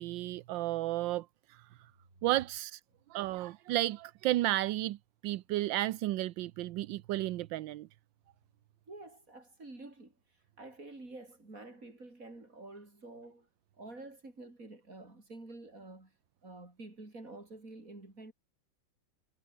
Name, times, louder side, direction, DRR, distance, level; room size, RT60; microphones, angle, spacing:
voice 1, 0.0-1.9 2.2-2.8 3.1-5.0 5.2-7.9, right 15 dB, 85° right, 1.4 m, -33 dB
voice 2, 8.9-10.2 10.6-13.5 13.8-16.1 16.4-18.3, right 2 dB, 45° right, 6.1 m, -49 dB
omnidirectional pair, 2.0 m